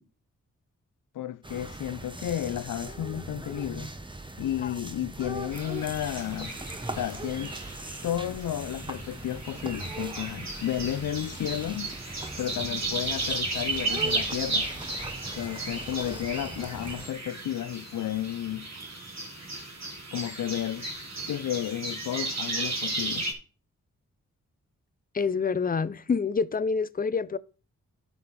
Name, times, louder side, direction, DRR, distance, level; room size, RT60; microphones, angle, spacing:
voice 1, 1.1-3.9 4.4-6.5 7.0-7.5 8.0-11.9 12.4-14.7 15.3-18.7 20.1-20.9 21.3-23.3, left 11 dB, 70° left, 0.6 m, -32 dB
sound 1, 1.4-17.1, right 2 dB, 15° right, 1.1 m, -40 dB
sound 2, 5.5-23.3, right 2 dB, 55° right, 3.1 m, -35 dB
voice 2, 25.1-27.4, left 5 dB, 25° left, 0.6 m, -27 dB
10.5 x 7.1 x 4.2 m
supercardioid pair, 45°, 33 cm